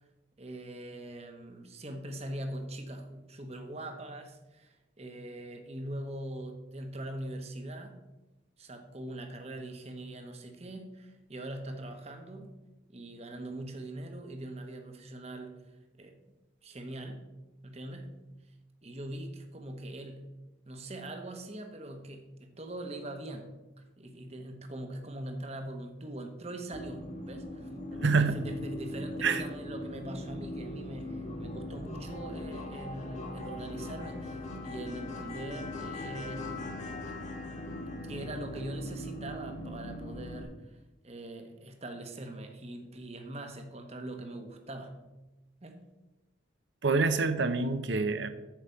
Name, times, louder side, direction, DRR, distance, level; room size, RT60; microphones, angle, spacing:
voice 1, 0.4-8.0 8.6-12.5 12.9-15.7 16.0-16.2 16.6-17.2 17.6-18.2 18.8-20.3 20.7-23.6 24.0-36.6 37.1-37.2 38.1-40.8 41.0-45.0 45.6-45.9, right 1 dB, 35° right, 5 dB, 1.1 m, -42 dB
sound 1, 26.7-40.4, left 1 dB, 40° left, 1.3 m, -40 dB
voice 2, 28.0-28.4 29.2-29.4 46.8-48.3, right 4 dB, 70° right, 10 dB, 0.7 m, -26 dB
8.0 x 5.0 x 6.9 m, 1.0 s
head